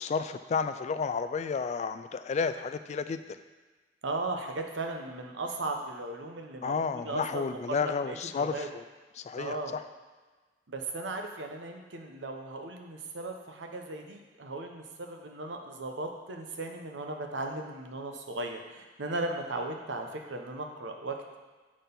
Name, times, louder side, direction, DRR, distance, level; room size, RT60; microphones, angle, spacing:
voice 1, 0.0-3.4 6.6-8.8 9.2-9.8, left 5 dB, 40° left, 11 dB, 0.3 m, -32 dB
voice 2, 4.0-8.7 9.4-9.7 10.7-21.4, right 2 dB, 90° right, 3 dB, 0.9 m, -37 dB
7.4 x 4.3 x 5.3 m, 1.3 s
head